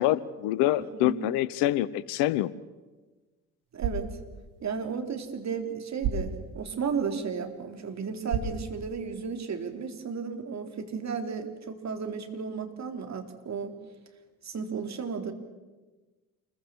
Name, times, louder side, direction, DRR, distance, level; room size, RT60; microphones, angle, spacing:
voice 1, 0.0-2.5, left 14 dB, 60° left, 19 dB, 1.0 m, -26 dB
voice 2, 0.8-1.3 3.7-4.1 4.6-13.8 14.4-15.3, right 6 dB, 35° right, 5 dB, 3.7 m, -34 dB
sound 1, 3.6-9.6, right 5 dB, 60° right, 4.6 m, -37 dB
28.0 x 22.0 x 7.3 m, 1.2 s
figure-of-eight pair, 60°, 45 cm